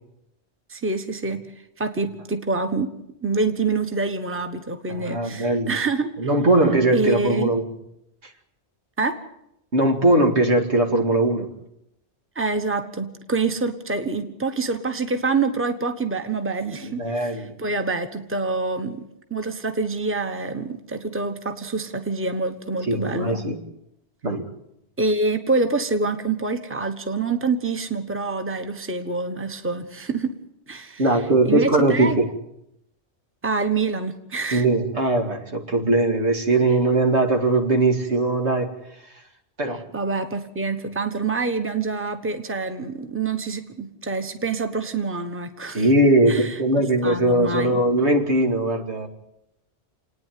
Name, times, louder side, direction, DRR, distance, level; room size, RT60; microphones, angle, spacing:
voice 1, 0.7-1.4 1.8-2.9 3.2-6.1 6.9-7.5 9.0-9.2 12.3-23.4 25.0-30.4 30.7-31.0 31.4-32.2 33.4-34.7 39.9-45.9 46.3-46.5 47.0-47.8, right 3 dB, 10° right, 7 dB, 1.2 m, -26 dB
voice 2, 4.9-5.7 6.2-7.6 9.7-11.5 16.8-17.6 22.9-23.6 24.2-24.5 31.0-32.3 34.5-38.7 39.6-39.9 45.7-49.1, right 2 dB, 80° right, 3 dB, 2.5 m, -20 dB
28.5 x 9.7 x 9.4 m, 0.82 s
omnidirectional pair, 1.1 m